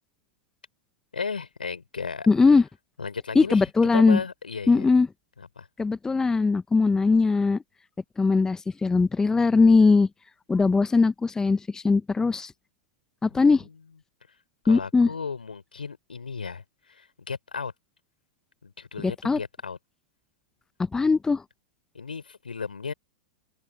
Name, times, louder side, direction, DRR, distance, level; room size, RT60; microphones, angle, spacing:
voice 1, 1.1-2.3 3.0-4.9 5.4-5.7 13.3-13.7 14.6-17.7 18.6-19.8 21.9-22.9, left 5 dB, 80° left, 4.7 m, -35 dB
voice 2, 2.3-2.6 3.3-4.2 4.7-5.1 5.8-7.6 8.2-10.1 10.5-12.5 13.2-13.6 14.7-15.1 19.0-19.4 20.9-21.4, left 4 dB, 10° left, 0.9 m, -20 dB
open air
figure-of-eight pair, 100°, 5 cm